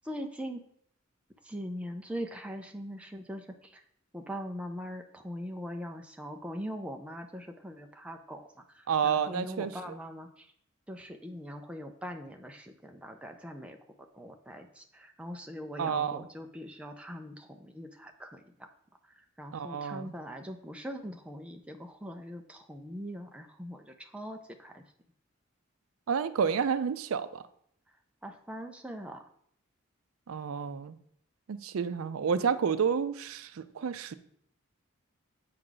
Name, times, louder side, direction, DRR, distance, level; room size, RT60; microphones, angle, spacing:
voice 1, 0.0-0.6 1.4-3.8 4.1-10.5 10.9-13.8 14.1-18.7 19.1-24.8 28.2-29.2, equal, 5° right, 3 dB, 0.5 m, -41 dB
voice 2, 8.9-9.9 15.8-16.3 19.5-20.1 26.1-27.4 30.3-31.0 31.5-34.1, right 6 dB, 80° right, 13 dB, 0.4 m, -30 dB
7.7 x 4.6 x 3.9 m, 0.68 s
head